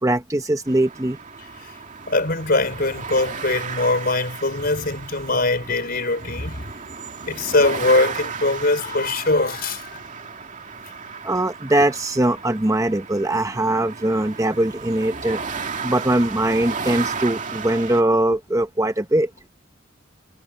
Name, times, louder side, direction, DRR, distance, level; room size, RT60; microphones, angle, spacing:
voice 1, 0.0-1.2 11.2-15.4 15.8-19.3, right 1 dB, 15° right, 0.9 m, -21 dB
sound 1, 0.7-18.0, right 5 dB, 40° right, 2.3 m, -34 dB
voice 2, 2.1-6.6 7.2-10.0, left 2 dB, 50° left, 4.7 m, -22 dB
head